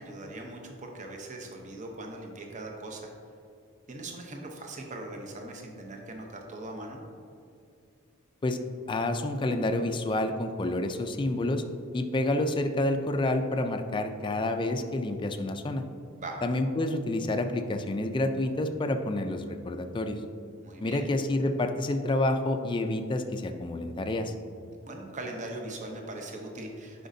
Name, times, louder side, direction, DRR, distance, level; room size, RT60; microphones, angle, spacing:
voice 1, 0.0-3.1 3.9-7.0 16.2-16.4 20.6-21.1 24.9-27.1, right 2 dB, 35° right, 2 dB, 0.7 m, -40 dB
voice 2, 8.9-11.6 11.9-15.8 16.4-20.2 20.8-24.3, left 2 dB, 25° left, 6 dB, 0.4 m, -28 dB
10.0 x 5.0 x 2.7 m, 2.4 s
head